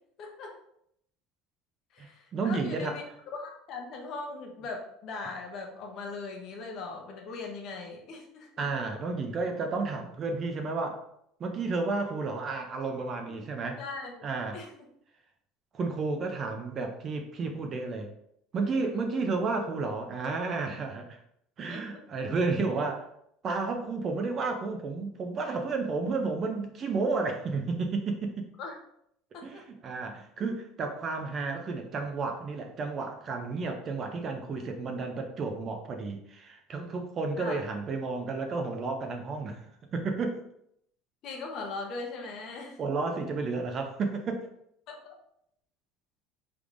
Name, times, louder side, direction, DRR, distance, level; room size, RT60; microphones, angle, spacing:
voice 1, 0.2-0.5 1.9-3.0 3.3-8.7 13.3-14.3 14.5-14.8 21.7-22.0 28.6-28.8 29.3-29.6 37.4-37.6 41.2-42.8 44.9-45.1, left 3 dB, 40° left, 1 dB, 0.8 m, -40 dB
voice 2, 2.0-3.0 8.6-11.0 11.4-13.8 14.2-14.6 15.7-18.1 18.5-21.2 21.6-23.1 23.4-28.5 29.4-39.6 39.9-40.4 42.8-44.5, right 3 dB, 25° right, 4 dB, 0.4 m, -32 dB
4.8 x 3.4 x 2.5 m, 0.73 s
cardioid pair, 165°, 0 cm